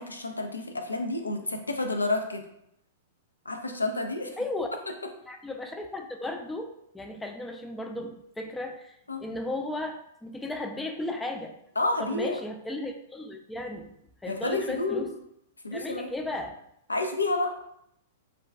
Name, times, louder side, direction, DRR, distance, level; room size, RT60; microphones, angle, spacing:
voice 1, 0.0-2.4 3.5-4.4 9.1-9.2 11.8-12.4 14.3-15.1 15.6-16.1 16.9-17.5, left 2 dB, 90° left, 5 dB, 0.3 m, -29 dB
voice 2, 4.4-4.7 5.3-11.6 12.0-13.9 14.2-15.1 15.7-16.6, left 2 dB, 10° left, 3 dB, 0.3 m, -35 dB
2.4 x 2.2 x 3.3 m, 0.77 s
figure-of-eight pair, 105°, 0 cm